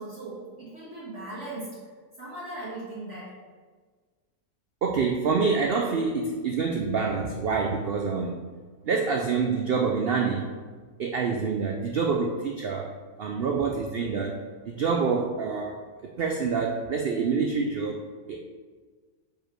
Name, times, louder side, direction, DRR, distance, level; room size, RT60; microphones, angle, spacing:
voice 1, 0.0-1.7 2.2-3.4, right 2 dB, 50° right, -10 dB, 1.9 m, -38 dB
voice 2, 4.8-8.5 8.8-10.5 11.0-12.9 13.2-14.4 14.7-18.0 18.3-18.4, right 5 dB, 90° right, 2 dB, 0.5 m, -27 dB
5.0 x 4.7 x 4.5 m, 1.5 s
omnidirectional pair, 1.7 m